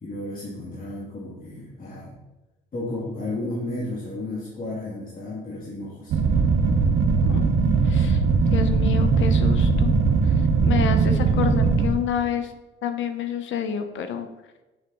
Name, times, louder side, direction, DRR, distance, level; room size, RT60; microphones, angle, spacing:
voice 1, 0.0-2.2 2.7-6.2, left 2 dB, 45° left, -6 dB, 2.1 m, -33 dB
sound 1, 6.1-11.9, right 4 dB, 75° right, 1.0 m, -20 dB
voice 2, 7.8-8.2 8.5-9.9 10.2-10.3 10.6-12.5 12.8-14.3, left 7 dB, 75° left, 8 dB, 0.9 m, -28 dB
7.0 x 6.5 x 3.9 m, 1.1 s
cardioid pair, 90°, 20 cm